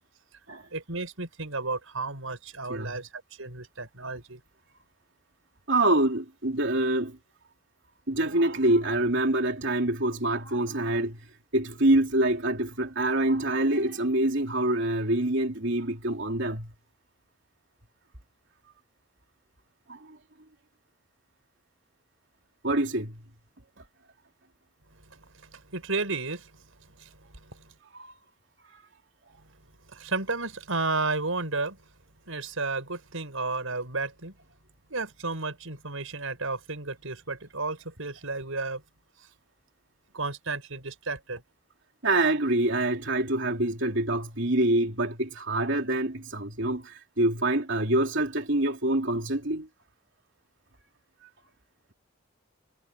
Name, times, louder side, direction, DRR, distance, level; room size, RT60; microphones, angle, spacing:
voice 1, 0.7-4.4 25.0-27.7 29.9-31.8 32.3-34.3 34.9-38.8 40.1-41.4, right 3 dB, 80° right, 5.5 m, -33 dB
voice 2, 2.7-3.0 5.7-7.2 8.1-11.2 11.5-16.7 19.9-20.2 22.6-23.2 27.9-28.1 42.0-49.7, right 1 dB, 65° right, 3.3 m, -26 dB
head